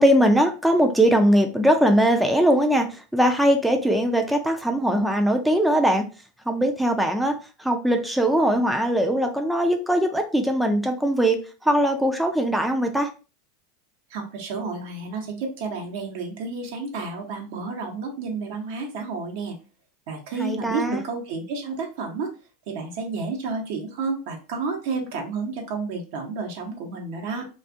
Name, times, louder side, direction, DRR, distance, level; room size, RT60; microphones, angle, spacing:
voice 1, 0.0-6.0 6.5-13.1 20.4-21.0, equal, 5° right, 4 dB, 0.3 m, -21 dB
voice 2, 14.1-19.6 20.1-22.3 22.7-27.5, right 4 dB, 70° right, 2 dB, 0.8 m, -31 dB
2.4 x 2.4 x 2.5 m, 0.34 s
hypercardioid pair, 105°, 0 cm